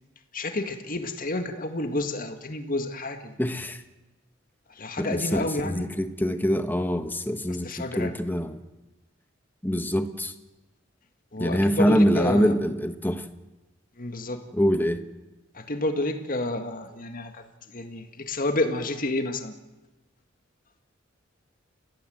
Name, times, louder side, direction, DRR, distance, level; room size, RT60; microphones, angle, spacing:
voice 1, 0.3-3.3 4.8-5.9 7.6-8.1 11.3-12.5 14.0-14.4 15.5-17.4 17.7-19.5, left 2 dB, 45° left, 6 dB, 2.0 m, -30 dB
voice 2, 3.4-3.8 5.0-8.6 9.6-10.3 11.4-13.2 14.5-15.0, equal, 10° left, 8 dB, 1.3 m, -24 dB
29.5 x 16.0 x 7.9 m, 1.1 s
head